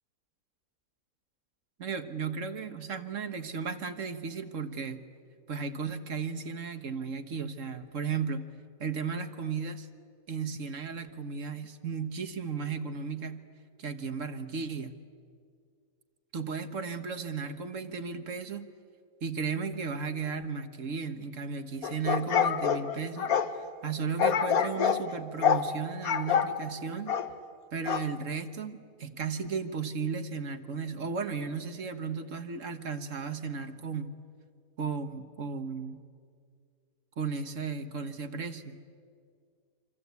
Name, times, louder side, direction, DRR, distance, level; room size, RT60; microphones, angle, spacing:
voice 1, 1.8-5.0 5.5-8.5 8.8-9.9 10.3-13.4 13.8-14.9 16.3-18.7 19.2-27.2 27.7-34.1 34.8-36.0 37.2-38.8, right 5 dB, 60° right, 8 dB, 1.6 m, -35 dB
sound 1, 21.8-23.5 24.2-25.0 25.4-25.7 26.0-26.5 27.1-27.3 27.9-28.1, left 8 dB, 80° left, 1.6 m, -26 dB
26.5 x 26.0 x 8.3 m, 2.2 s
omnidirectional pair, 1.5 m